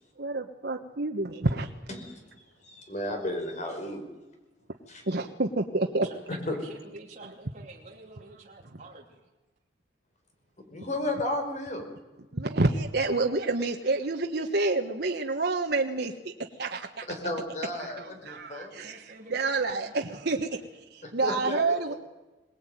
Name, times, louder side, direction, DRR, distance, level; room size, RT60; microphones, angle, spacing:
voice 1, 0.2-1.7 5.0-6.1 12.3-17.1 17.8-20.6 20.9-21.9, right 3 dB, 60° right, 3 dB, 1.4 m, -28 dB
voice 2, 1.9-2.2 2.6-4.0 4.9-5.0 6.5-6.6 10.7-11.8 17.1-18.8 21.0-22.0, left 1 dB, 40° left, 4 dB, 5.1 m, -33 dB
voice 3, 6.0-9.2 18.8-20.3, right 2 dB, 40° right, -2 dB, 2.9 m, -49 dB
22.5 x 19.5 x 9.2 m, 1.1 s
head